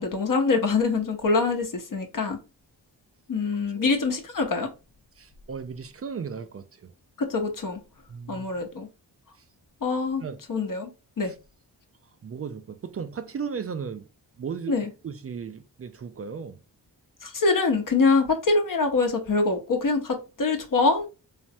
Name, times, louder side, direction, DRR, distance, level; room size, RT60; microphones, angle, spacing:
voice 1, 0.0-2.4 3.3-4.7 7.2-7.8 8.3-8.9 9.8-10.2 10.5-10.9 11.2-11.3 14.7-14.9 17.2-21.1, left 4 dB, 45° left, 0.8 m, -24 dB
voice 2, 5.2-6.9 8.1-8.5 9.4-9.5 10.2-10.4 11.2-11.3 12.2-14.1 14.4-14.8 15.0-16.6, right 6 dB, 35° right, 0.4 m, -36 dB
3.3 x 2.0 x 2.6 m
cardioid pair, 45°, 46 cm